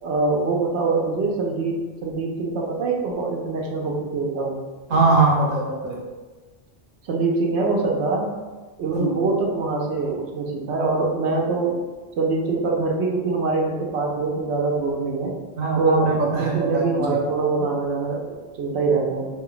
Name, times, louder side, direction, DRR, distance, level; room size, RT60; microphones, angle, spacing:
voice 1, 0.0-4.6 7.0-8.4 8.8-11.8 12.2-15.3 15.8-19.3, right 3 dB, 90° right, -1 dB, 0.9 m, -24 dB
voice 2, 4.9-6.0 8.9-9.2 15.6-17.2, right 3 dB, 55° right, -2 dB, 0.8 m, -21 dB
2.5 x 2.1 x 3.7 m, 1.3 s
omnidirectional pair, 1.1 m